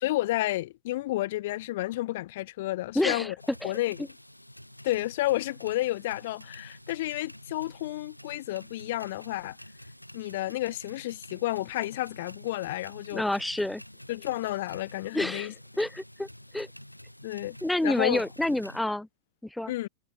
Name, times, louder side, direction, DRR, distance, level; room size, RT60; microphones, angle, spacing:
voice 1, 0.0-3.3 3.6-4.1 4.8-9.6 10.1-13.2 14.1-15.5 17.2-17.6 17.8-18.2 19.7-19.9, left 16 dB, 55° left, 0.8 m, -31 dB
voice 2, 2.9-3.3 3.6-3.7 13.1-13.8 15.1-16.3 16.5-16.7 17.6-19.1 19.5-19.7, left 1 dB, 5° left, 0.6 m, -28 dB
sound 1, 3.4-18.8, left 1 dB, 90° left, 3.7 m, -49 dB
figure-of-eight pair, 90°, 0 cm